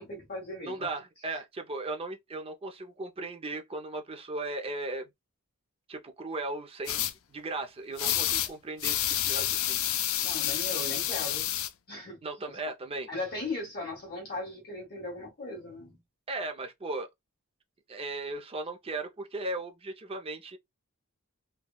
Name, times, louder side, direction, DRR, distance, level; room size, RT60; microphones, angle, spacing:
voice 1, 0.0-0.9 10.2-11.5 11.9-12.2 13.1-16.0, left 2 dB, 50° left, 1.6 m, -38 dB
voice 2, 0.7-5.1 5.9-9.8 12.2-13.1 16.3-17.1 17.9-20.6, right 2 dB, 25° right, 0.5 m, -37 dB
sound 1, 6.9-7.1 8.0-8.5 8.8-11.7, left 11 dB, 70° left, 0.4 m, -29 dB
3.4 x 2.2 x 2.3 m
head